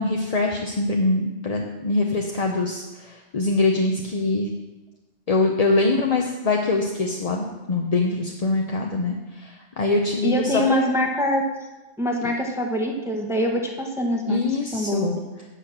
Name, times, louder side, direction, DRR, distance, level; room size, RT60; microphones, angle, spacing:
voice 1, 0.0-4.5 5.3-10.9 12.2-12.3 14.3-15.2, left 3 dB, 40° left, 1 dB, 0.7 m, -23 dB
voice 2, 10.2-11.4 12.0-14.4 14.7-15.1, equal, 5° right, 2 dB, 0.8 m, -24 dB
9.1 x 5.8 x 6.5 m, 1.1 s
omnidirectional pair, 1.3 m